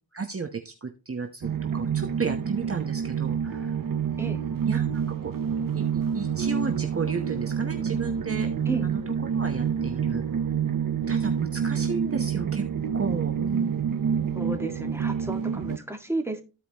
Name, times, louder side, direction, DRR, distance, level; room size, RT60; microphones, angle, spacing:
voice 1, 0.1-3.8 4.6-5.3 5.7-10.2 11.1-12.7 12.9-13.9, right 5 dB, 40° right, 1.0 m, -33 dB
sound 1, 1.4-15.8, right 7 dB, 60° right, 0.8 m, -28 dB
voice 2, 14.3-16.4, right 2 dB, 5° right, 1.8 m, -32 dB
14.5 x 4.9 x 2.9 m
wide cardioid pair, 80°, 37 cm